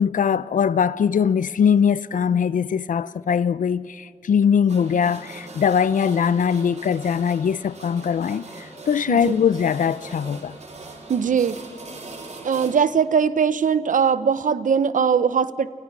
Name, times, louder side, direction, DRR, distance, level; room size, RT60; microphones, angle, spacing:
voice 1, 0.0-10.5, left 7 dB, 85° left, 0.5 m, -21 dB
sound 1, 4.7-12.8, right 3 dB, 60° right, 3.3 m, -41 dB
voice 2, 9.1-9.4 11.1-11.6 12.4-15.7, right 6 dB, 80° right, 0.7 m, -20 dB
29.0 x 24.5 x 6.1 m
wide cardioid pair, 105°, 13 cm